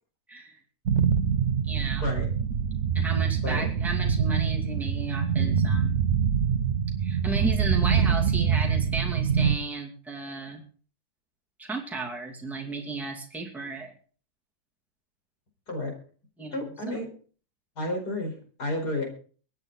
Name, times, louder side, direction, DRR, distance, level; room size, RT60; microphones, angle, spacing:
voice 1, 0.3-0.6 1.7-2.1 2.9-6.0 7.0-10.6 11.6-13.9 16.4-17.0, right 3 dB, ahead, -1 dB, 2.5 m, -34 dB
sound 1, 0.8-9.5, right 7 dB, 55° right, 1.1 m, -25 dB
voice 2, 16.5-17.1 17.8-19.1, left 1 dB, 75° left, 3 dB, 5.2 m, -31 dB
24.5 x 9.1 x 4.0 m, 0.42 s
omnidirectional pair, 1.7 m